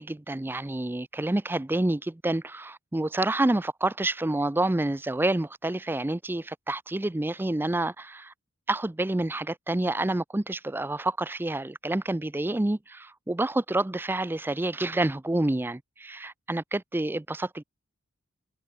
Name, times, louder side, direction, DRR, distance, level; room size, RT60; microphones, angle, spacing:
voice 1, 0.0-8.3 8.7-17.6, right 2 dB, 10° right, 0.4 m, -28 dB
head